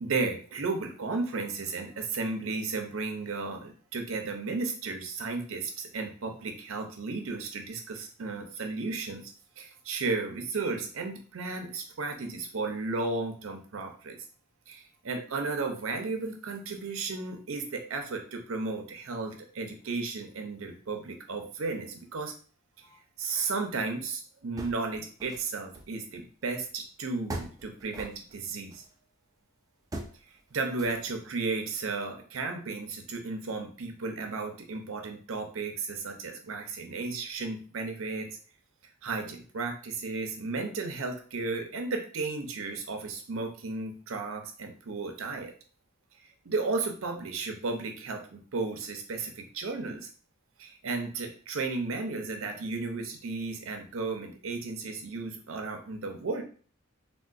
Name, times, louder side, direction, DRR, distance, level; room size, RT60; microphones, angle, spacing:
voice 1, 0.0-9.3 9.6-14.2 14.7-22.3 22.8-28.8 30.5-38.3 39.0-45.5 46.4-50.1 50.6-56.4, right 3 dB, 75° right, 4 dB, 0.6 m, -34 dB
sound 1, 24.6-25.5 25.7-26.8 27.3-28.9 29.9-30.2 30.7-31.3, right 2 dB, 15° right, 0.3 m, -41 dB
3.6 x 2.2 x 2.5 m, 0.42 s
head